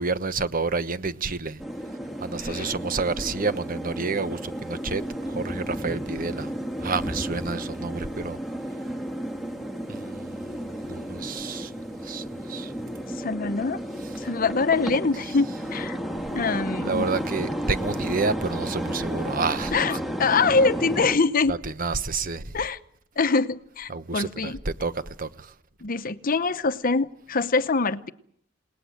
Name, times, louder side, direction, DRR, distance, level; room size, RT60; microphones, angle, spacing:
voice 1, 0.0-1.6 2.2-6.5 6.8-8.4 9.9-10.3 10.9-11.7 12.0-12.7 16.8-19.7 21.5-22.6 23.9-25.5, right 4 dB, 45° right, 1.1 m, -29 dB
sound 1, 1.6-21.2, equal, ahead, 1.8 m, -32 dB
voice 2, 2.4-2.7 13.2-13.8 14.2-16.0 16.3-17.1 19.7-21.5 22.5-22.8 23.2-24.6 25.8-28.1, left 4 dB, 45° left, 0.9 m, -24 dB
29.0 x 19.0 x 7.8 m
head